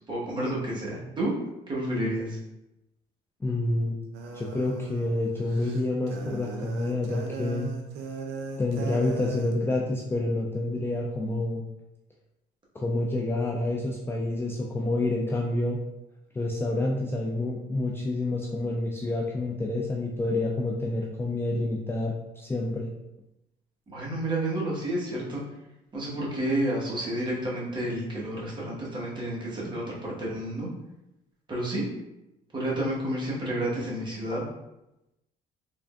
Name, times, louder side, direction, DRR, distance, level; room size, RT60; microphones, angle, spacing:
voice 1, 0.1-1.3 1.7-2.4 23.9-25.4 25.9-30.7 31.5-31.8 32.5-34.4, right 1 dB, 30° right, -5 dB, 1.3 m, -30 dB
voice 2, 3.4-4.0 4.3-7.7 8.6-11.6 12.7-15.8 16.3-22.9, left 2 dB, 15° left, -3 dB, 0.4 m, -28 dB
sound 1, 4.1-9.5, right 4 dB, 85° right, 0.5 m, -38 dB
3.6 x 3.3 x 2.4 m, 0.91 s
cardioid pair, 110°, 17 cm